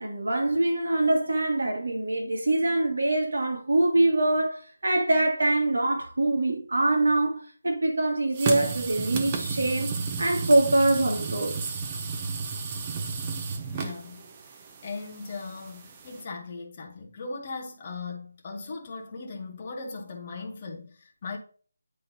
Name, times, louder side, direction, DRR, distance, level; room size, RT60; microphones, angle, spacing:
voice 1, 0.0-9.9 10.2-11.6, right 2 dB, 70° right, 1.6 m, -24 dB
sound 1, 8.3-16.2, right 5 dB, 15° right, 0.4 m, -33 dB
voice 2, 13.7-14.3 14.6-21.4, left 4 dB, 20° left, 0.9 m, -38 dB
9.8 x 3.7 x 2.7 m
figure-of-eight pair, 175°, 0 cm